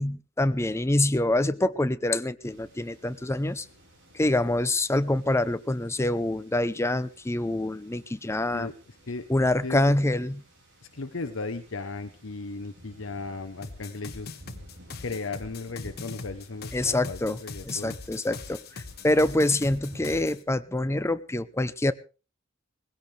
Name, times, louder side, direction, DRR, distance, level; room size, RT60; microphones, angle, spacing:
voice 1, 0.0-3.7 4.1-8.7 9.3-10.4 16.7-21.9, left 1 dB, 15° left, 13 dB, 0.6 m, -26 dB
sound 1, 2.4-20.3, equal, 65° right, 5.8 m, -55 dB
voice 2, 10.9-14.3 15.0-17.9, left 3 dB, 75° left, 8 dB, 0.9 m, -36 dB
sound 2, 13.6-20.4, left 4 dB, 55° left, 1.4 m, -41 dB
19.5 x 16.5 x 3.3 m, 0.34 s
head